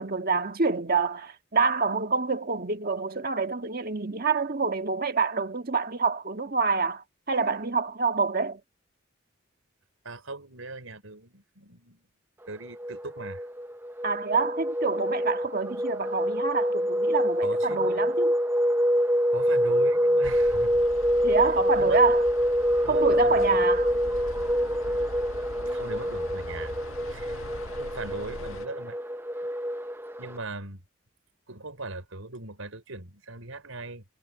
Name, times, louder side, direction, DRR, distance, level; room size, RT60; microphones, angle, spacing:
voice 1, 0.0-8.6 14.0-18.3 21.2-22.2 22.9-23.9, right 4 dB, 45° right, 1.6 m, -27 dB
voice 2, 10.0-12.0 12.5-13.5 17.4-18.1 19.3-20.8 21.3-22.0 22.8-23.7 25.7-26.7 27.0-27.4 27.8-29.0 30.2-30.8 31.5-34.1, right 2 dB, 90° right, 5.6 m, -40 dB
sound 1, 12.6-30.4, equal, 10° right, 0.7 m, -26 dB
sound 2, 20.2-28.7, left 2 dB, 85° left, 1.7 m, -42 dB
head